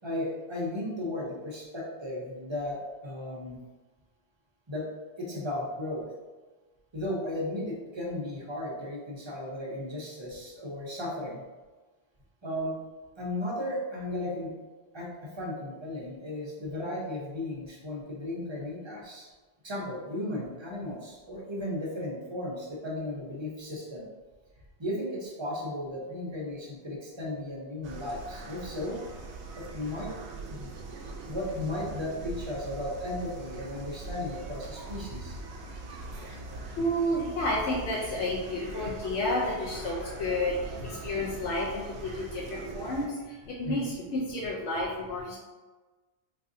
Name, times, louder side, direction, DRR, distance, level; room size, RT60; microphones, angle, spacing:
voice 1, 0.0-3.6 4.7-4.9 5.2-6.1 6.9-11.4 12.4-12.8 13.2-14.5 14.9-19.3 19.6-24.1 24.8-29.0 29.6-30.1 30.5-30.7 31.2-35.4 43.6-44.0, left 1 dB, 30° right, -4 dB, 0.6 m, -35 dB
sound 1, 27.8-43.1, right 3 dB, 85° right, 0.9 m, -42 dB
voice 2, 36.2-45.4, left 1 dB, 85° left, -4 dB, 0.9 m, -31 dB
4.0 x 2.6 x 2.6 m, 1.3 s
omnidirectional pair, 1.1 m